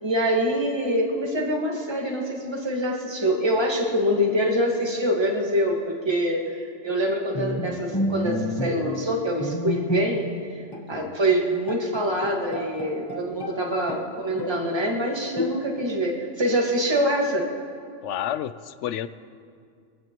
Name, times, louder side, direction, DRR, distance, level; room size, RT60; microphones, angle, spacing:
voice 1, 0.0-10.2 10.9-17.5, equal, 20° right, -1 dB, 1.7 m, -25 dB
Bowed string instrument, 7.3-10.4 10.7-10.9 11.4-11.5 11.7-13.6 13.9-14.7 15.4-16.0, left 1 dB, 20° left, 1.0 m, -30 dB
voice 2, 18.0-19.1, left 11 dB, 75° left, 13 dB, 0.9 m, -30 dB
23.0 x 16.0 x 3.0 m, 2.3 s
omnidirectional pair, 1.3 m